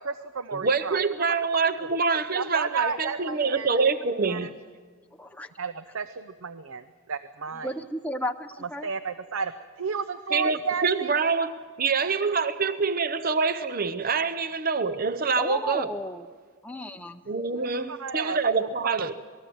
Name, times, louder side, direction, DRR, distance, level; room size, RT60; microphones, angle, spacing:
voice 1, 0.0-1.0 2.3-3.8 4.3-4.5 5.6-7.7 8.8-9.5 9.8-11.1 17.6-18.4 19.0-19.1, right 5 dB, 75° right, 0.8 m, -32 dB
voice 2, 0.6-4.5 10.3-15.9 17.3-19.2, right 4 dB, 40° right, 0.7 m, -26 dB
voice 3, 5.2-5.5 7.6-8.9 15.4-16.3 16.6-17.2, left 1 dB, 5° left, 0.6 m, -33 dB
27.0 x 20.0 x 7.7 m
head